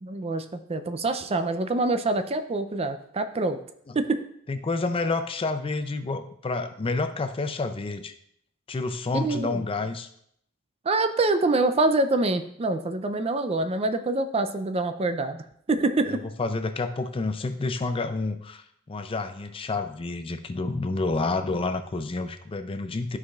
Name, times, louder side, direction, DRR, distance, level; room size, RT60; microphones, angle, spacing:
voice 1, 0.0-3.6 3.9-4.2 9.1-9.7 10.8-16.2, right 2 dB, 30° right, 9 dB, 0.4 m, -25 dB
voice 2, 4.5-8.1 8.7-10.1 16.1-23.2, left 3 dB, 25° left, 8 dB, 0.4 m, -29 dB
12.5 x 4.8 x 2.4 m, 0.69 s
head